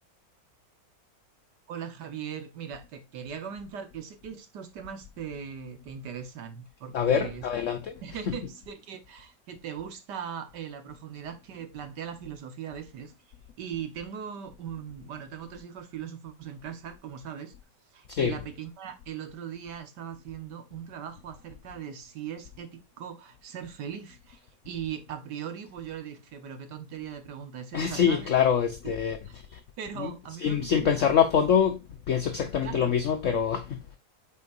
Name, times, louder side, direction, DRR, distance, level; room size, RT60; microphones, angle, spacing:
voice 1, 1.7-7.5 8.0-13.1 13.6-17.5 17.9-24.4 24.6-28.3 29.3-29.4 29.8-31.1 32.6-33.0, right 8 dB, 70° right, 1.7 m, -39 dB
voice 2, 6.9-7.9 8.3-8.4 18.1-18.4 27.7-29.6 30.0-30.1 30.4-34.0, left 8 dB, 60° left, 0.9 m, -25 dB
8.5 x 4.4 x 2.5 m
omnidirectional pair, 1.9 m